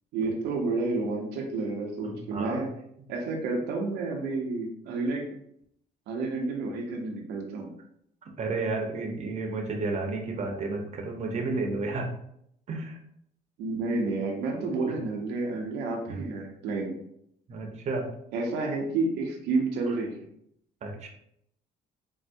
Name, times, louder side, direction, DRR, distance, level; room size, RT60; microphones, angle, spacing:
voice 1, 0.1-2.7 3.1-5.3 6.1-7.7 13.6-17.0 18.3-20.2, right 3 dB, 85° right, 1 dB, 0.7 m, -30 dB
voice 2, 2.0-2.6 8.2-12.1 12.7-13.0 16.1-16.2 17.5-18.1 19.8-20.0 20.8-21.1, right 3 dB, 45° right, 2 dB, 0.7 m, -32 dB
4.3 x 2.0 x 2.6 m, 0.72 s
cardioid pair, 110°, 17 cm